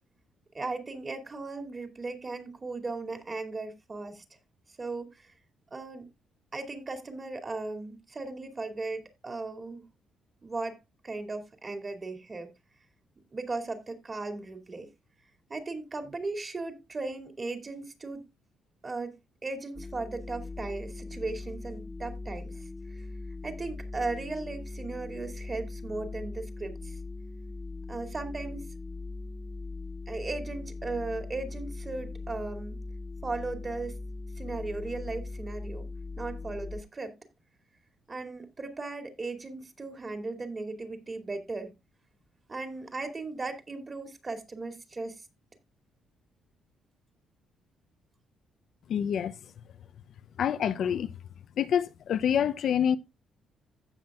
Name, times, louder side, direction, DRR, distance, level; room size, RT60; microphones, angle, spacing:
voice 1, 0.5-4.2 4.8-5.3 5.7-6.1 6.5-9.9 10.4-10.8 11.0-12.5 13.3-14.9 15.5-18.2 18.8-19.1 19.4-22.5 22.9-23.1 23.4-27.0 27.9-28.6 30.1-32.8 33.2-33.9 34.4-35.8 36.2-37.1 38.1-41.7 42.5-45.2, right 3 dB, 30° right, 2.3 m, -37 dB
sound 1, 19.8-36.8, left 3 dB, 15° left, 0.7 m, -40 dB
voice 2, 48.9-49.4 50.4-51.1 51.6-53.0, left 8 dB, 65° left, 0.6 m, -26 dB
16.0 x 6.0 x 2.4 m
cardioid pair, 90°, 0 cm